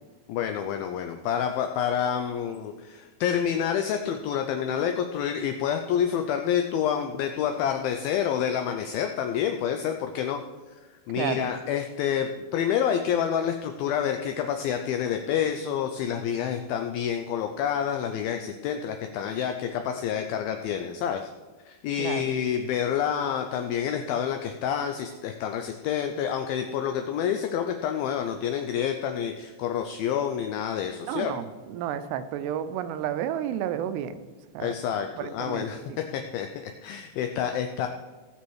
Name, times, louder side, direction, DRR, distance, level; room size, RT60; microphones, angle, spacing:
voice 1, 0.3-10.4 10.7-10.8 11.1-21.3 21.7-31.3 34.6-37.9, left 8 dB, 85° left, 6 dB, 2.1 m, -28 dB
voice 2, 11.2-11.5 22.0-22.2 31.1-34.2 34.5-34.8 35.2-36.0, right 10 dB, 85° right, 11 dB, 2.7 m, -31 dB
18.5 x 6.3 x 4.7 m, 1.3 s
omnidirectional pair, 4.9 m